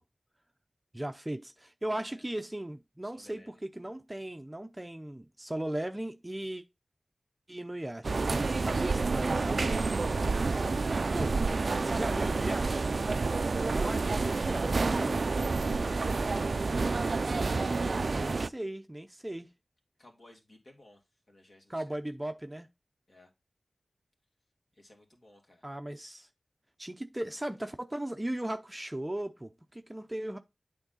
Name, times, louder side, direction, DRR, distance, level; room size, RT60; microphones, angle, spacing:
voice 1, 0.9-6.6 7.5-9.7 11.1-11.4 11.8-12.9 13.7-15.2 18.0-19.5 21.7-22.7 25.6-26.3 26.8-30.4, right 1 dB, 15° right, 0.6 m, -37 dB
voice 2, 3.0-3.5 11.1-11.4 20.0-21.0 21.3-22.0 23.1-23.3 24.7-25.7, left 1 dB, 50° left, 2.4 m, -58 dB
sound 1, 8.0-18.5, right 3 dB, 65° right, 0.3 m, -29 dB
8.7 x 3.6 x 3.9 m
wide cardioid pair, 80°, 0 cm